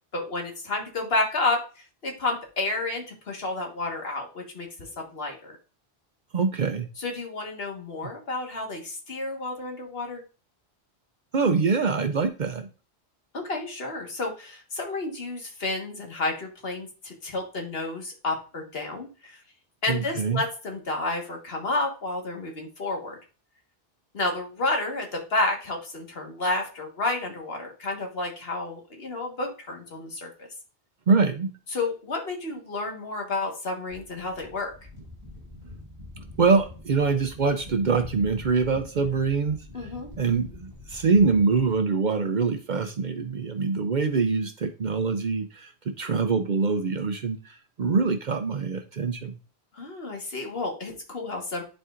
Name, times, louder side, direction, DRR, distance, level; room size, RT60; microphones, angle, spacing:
voice 1, 0.1-5.6 7.0-10.2 13.3-19.4 19.8-23.2 24.1-30.5 31.7-34.7 39.7-40.1 49.7-51.6, left 2 dB, 65° left, 2 dB, 1.7 m, -31 dB
voice 2, 6.3-6.9 11.3-12.7 19.9-20.4 31.1-31.5 36.4-39.6 40.2-47.4 47.8-49.4, right 4 dB, 50° right, 7 dB, 0.7 m, -24 dB
sound 1, 33.9-41.7, left 2 dB, 30° left, 4.2 m, -44 dB
11.0 x 4.5 x 2.5 m, 0.35 s
omnidirectional pair, 1.1 m